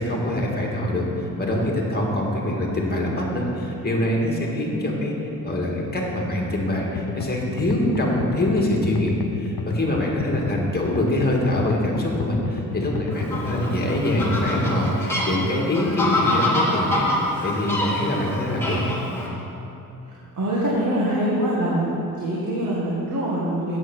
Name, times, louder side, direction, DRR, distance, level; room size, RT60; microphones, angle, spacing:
voice 1, 0.0-5.1 5.4-17.1 17.4-18.9, left 1 dB, 25° left, -1 dB, 1.9 m, -24 dB
sound 1, 7.0-14.9, left 6 dB, 85° left, 0.5 m, -32 dB
Fowl, 13.1-19.3, left 1 dB, 5° left, 2.1 m, -26 dB
voice 2, 20.0-21.9 22.2-23.8, right 1 dB, 55° right, -6 dB, 1.7 m, -24 dB
8.0 x 7.6 x 6.1 m, 2.9 s
cardioid pair, 95°, 35 cm